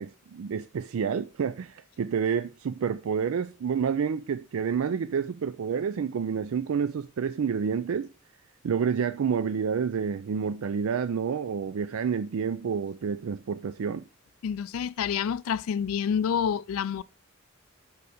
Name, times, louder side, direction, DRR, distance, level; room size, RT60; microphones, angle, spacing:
voice 1, 0.0-8.1 8.6-14.0, right 6 dB, 75° right, 0.4 m, -29 dB
voice 2, 14.4-17.0, left 7 dB, 80° left, 0.4 m, -28 dB
6.8 x 4.9 x 5.0 m
head